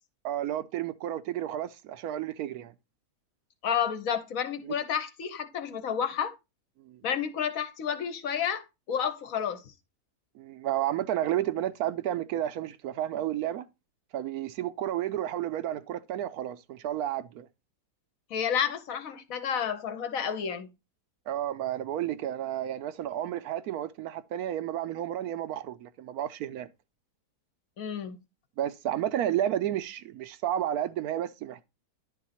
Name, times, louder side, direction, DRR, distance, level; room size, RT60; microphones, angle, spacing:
voice 1, 0.2-2.7 4.6-4.7 6.8-7.0 10.4-13.7 14.1-17.5 21.3-26.7 28.6-31.6, right 11 dB, 75° right, 1.0 m, -31 dB
voice 2, 3.6-6.3 7.0-9.6 18.3-20.7 27.8-28.2, left 8 dB, 65° left, 1.2 m, -30 dB
10.5 x 3.9 x 4.1 m
omnidirectional pair, 1.7 m